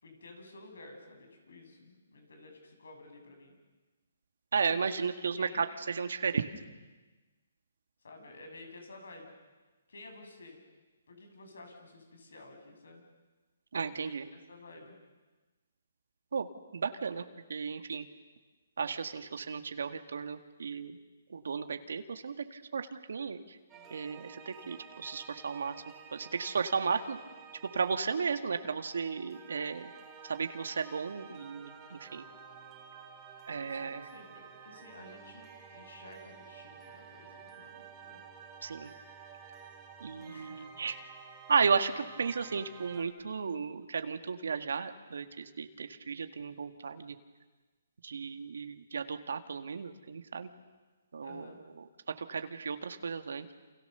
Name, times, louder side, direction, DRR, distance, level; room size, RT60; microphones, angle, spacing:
voice 1, 0.0-3.5 4.7-4.8 5.4-5.6 8.0-9.3 9.9-10.6 11.1-13.0 13.9-15.0 33.5-38.2 40.3-40.7 51.2-51.6, left 2 dB, 80° left, 4 dB, 7.9 m, -52 dB
voice 2, 4.5-6.5 13.7-14.3 16.3-18.1 18.8-21.0 21.3-23.6 23.9-25.8 26.1-27.2 27.7-29.9 30.2-32.2 33.5-34.1 38.6-38.9 40.0-41.0 41.5-47.2 48.0-50.5 51.1-51.5 51.8-51.9 52.2-53.5, right 5 dB, 75° right, 8 dB, 1.9 m, -34 dB
sound 1, 23.7-43.0, right 6 dB, 15° right, 3.9 m, -51 dB
29.0 x 28.0 x 6.9 m, 1.2 s
hypercardioid pair, 160°, 0 cm